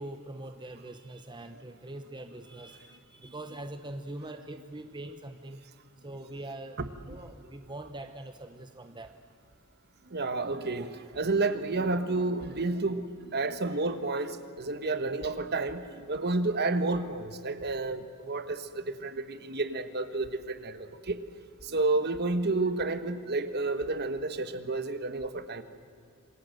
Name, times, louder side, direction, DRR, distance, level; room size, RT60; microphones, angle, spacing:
voice 1, 0.0-5.6 6.0-9.1, right 1 dB, 20° right, 7 dB, 0.9 m, -43 dB
voice 2, 10.1-21.2 21.6-25.6, right 3 dB, 45° right, 10 dB, 1.3 m, -30 dB
27.0 x 21.5 x 7.9 m, 2.5 s
head